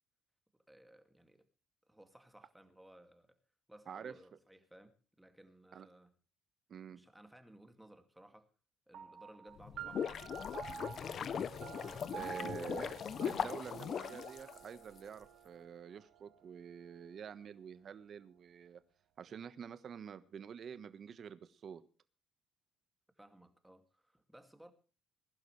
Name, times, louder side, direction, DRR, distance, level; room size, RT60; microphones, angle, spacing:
voice 1, 0.5-1.5 1.9-3.4 3.7-6.1 6.9-8.5 8.9-10.6 11.7-12.5 23.2-24.7, right 1 dB, 5° right, 2.3 m, -60 dB
voice 2, 6.7-7.0 12.1-18.8 19.2-21.8, right 7 dB, 45° right, 1.2 m, -48 dB
sound 1, 8.9-17.8, right 8 dB, 65° right, 2.7 m, -50 dB
sound 2, 9.6-15.0, left 8 dB, 45° left, 0.7 m, -39 dB
21.5 x 11.5 x 3.3 m
cardioid pair, 120°, 0 cm